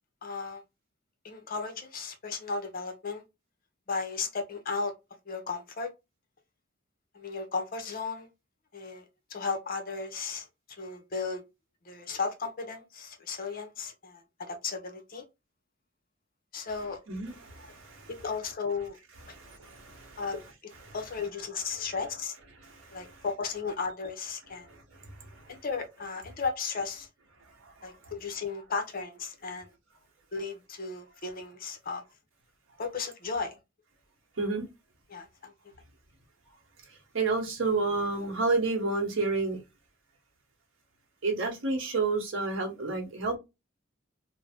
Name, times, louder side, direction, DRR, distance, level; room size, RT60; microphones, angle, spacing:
voice 1, 0.2-0.6 1.2-3.2 3.9-4.9 5.3-5.9 7.1-8.3 8.7-9.0 9.3-11.4 11.8-15.2 16.5-17.0 18.2-19.0 19.3-19.4 20.2-20.4 20.9-22.4 22.9-24.7 25.5-27.1 27.8-29.7 30.3-32.0 32.8-33.6 35.1-35.5, left 4 dB, 45° left, 0.6 m, -35 dB
voice 2, 17.1-18.1 19.2-20.2 20.8-20.9 22.6-23.2 24.6-24.8 25.2-25.4 27.6-27.7 34.4-34.7 37.1-39.6 41.2-43.4, right 3 dB, 75° right, 0.9 m, -30 dB
2.5 x 2.0 x 3.4 m
head